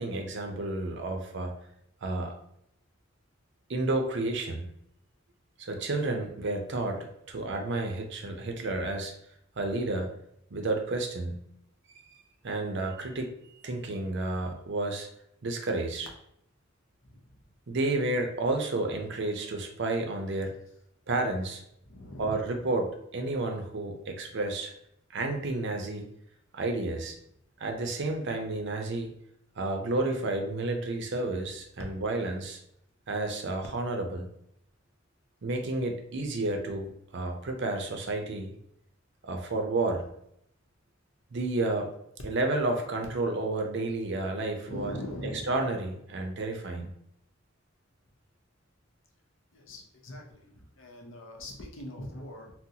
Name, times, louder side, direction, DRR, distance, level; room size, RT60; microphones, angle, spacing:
voice 1, 0.0-1.6 2.0-2.3 3.7-4.7 5.6-9.1 9.6-10.1 10.5-11.4 12.4-15.1 15.4-16.1 17.7-20.6 21.1-21.6 22.2-24.7 25.1-26.1 26.5-27.2 27.6-29.1 29.6-32.6 33.1-34.3 35.4-38.6 39.2-40.0 41.3-41.9 42.2-44.9 45.5-46.9, right 2 dB, 65° right, 4 dB, 0.5 m, -31 dB
voice 2, 17.0-17.4 21.8-22.5 44.7-45.6 49.5-52.5, left 1 dB, 75° left, 1 dB, 0.7 m, -42 dB
3.8 x 2.1 x 2.8 m, 0.73 s
head